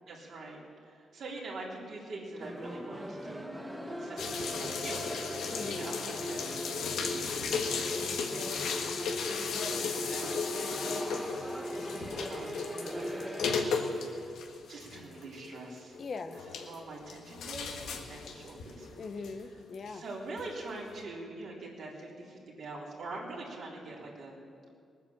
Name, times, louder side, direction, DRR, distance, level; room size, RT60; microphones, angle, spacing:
voice 1, 0.1-0.6 0.8-5.2 5.7-7.5 8.5-9.0 9.6-11.3 11.7-14.4 14.7-16.0 16.5-18.9 19.9-24.4, right 2 dB, 70° right, -4 dB, 3.8 m, -44 dB
sound 1, 2.4-13.6, equal, 5° right, 1.4 m, -40 dB
sound 2, 4.2-19.9 20.4-20.5 20.9-21.0, left 5 dB, 85° left, 1.5 m, -36 dB
voice 2, 5.5-5.9 16.0-16.4 18.9-20.0, left 4 dB, 50° left, 8 dB, 0.9 m, -40 dB
19.5 x 9.3 x 7.3 m, 2.3 s
cardioid pair, 90°, 0 cm